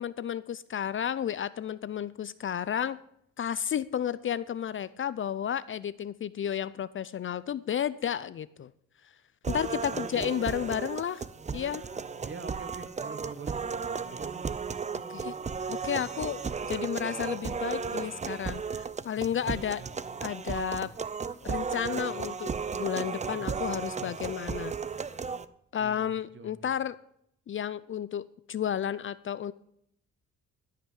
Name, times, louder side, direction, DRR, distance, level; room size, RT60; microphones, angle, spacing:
voice 1, 0.0-3.0 3.4-8.7 9.5-11.2 11.5-11.9 15.1-15.3 15.7-19.8 20.2-20.9 21.4-24.7 25.7-27.0 27.5-29.5, left 9 dB, 40° left, 18 dB, 0.5 m, -32 dB
sound 1, 9.4-25.4, right 5 dB, 25° right, 0.6 m, -35 dB
voice 2, 9.4-10.7 12.2-14.4 19.2-19.3 19.8-19.9 20.8-20.9 23.3-24.1 24.6-24.8 25.8-26.1 26.3-26.7, right 5 dB, 40° right, 11 dB, 1.5 m, -45 dB
13.5 x 5.8 x 8.1 m, 0.71 s
cardioid pair, 90°, 30 cm